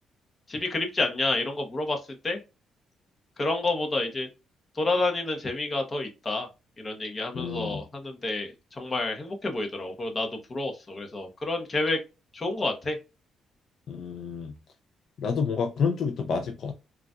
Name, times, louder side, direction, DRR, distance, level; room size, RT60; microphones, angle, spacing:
voice 1, 0.5-2.4 3.4-4.3 4.7-6.5 6.8-12.0 12.3-13.0, left 2 dB, 30° left, 3 dB, 0.9 m, -29 dB
voice 2, 7.3-7.8 13.9-14.5 15.2-16.7, left 5 dB, 65° left, 4 dB, 0.5 m, -29 dB
3.9 x 2.4 x 2.4 m, 0.27 s
cardioid pair, 90°, 0 cm